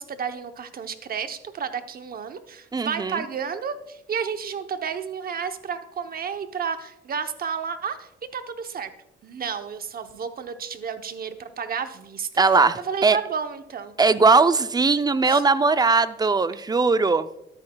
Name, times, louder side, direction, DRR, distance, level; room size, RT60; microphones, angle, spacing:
voice 1, 0.0-8.9 9.2-13.9 15.2-15.4, right 6 dB, 50° right, 9 dB, 0.8 m, -32 dB
voice 2, 2.7-3.2 12.4-13.2 14.0-17.3, right 4 dB, 20° right, 13 dB, 0.4 m, -19 dB
12.5 x 9.9 x 2.3 m, 0.82 s
cardioid pair, 90°, 20 cm